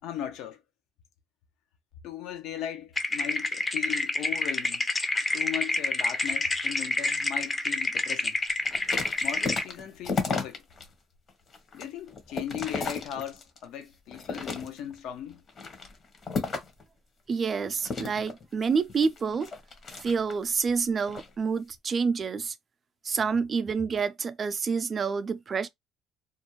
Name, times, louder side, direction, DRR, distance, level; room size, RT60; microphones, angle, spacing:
voice 1, 0.0-0.6 2.0-4.9 5.3-8.4 9.2-10.6 11.7-15.4, left 10 dB, 80° left, 0.6 m, -37 dB
sound 1, 3.0-9.6, left 2 dB, 20° left, 0.5 m, -28 dB
sound 2, 8.6-10.9 11.3-13.6 14.1-15.0 15.5-16.8 17.8-20.5 21.0-21.3, left 4 dB, 45° left, 0.9 m, -34 dB
voice 2, 17.3-19.5 20.0-22.5 23.0-25.7, right 5 dB, 40° right, 0.4 m, -28 dB
2.5 x 2.1 x 3.0 m
cardioid pair, 95°, 0 cm